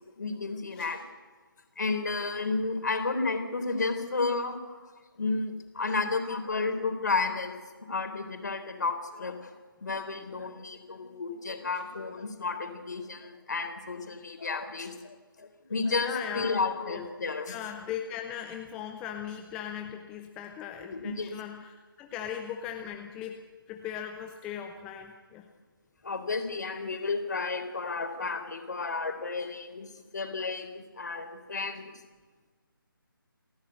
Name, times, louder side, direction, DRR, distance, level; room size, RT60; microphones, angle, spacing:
voice 1, 0.2-1.0 1.8-4.8 5.2-7.6 7.9-9.5 9.8-17.5 20.8-21.3 26.0-31.9, left 3 dB, 50° left, 6 dB, 3.8 m, -32 dB
voice 2, 16.0-17.0 17.5-23.4 23.7-25.5, left 9 dB, 5° left, 4 dB, 0.6 m, -39 dB
28.5 x 11.5 x 8.1 m, 1.4 s
figure-of-eight pair, 155°, 12 cm